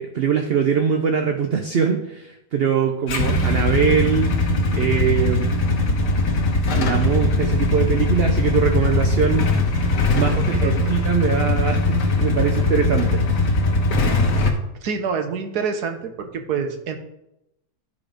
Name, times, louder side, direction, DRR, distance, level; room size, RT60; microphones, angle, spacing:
voice 1, 0.0-4.3 4.7-5.5 6.7-9.6 10.1-13.5, right 7 dB, 55° right, 4 dB, 0.7 m, -22 dB
Motorcycle / Engine starting / Idling, 3.1-14.5, left 2 dB, 85° left, 1.8 m, -20 dB
voice 2, 10.3-10.9 14.8-17.0, right 6 dB, 75° right, 7 dB, 1.5 m, -27 dB
12.5 x 4.2 x 5.0 m, 0.85 s
omnidirectional pair, 1.7 m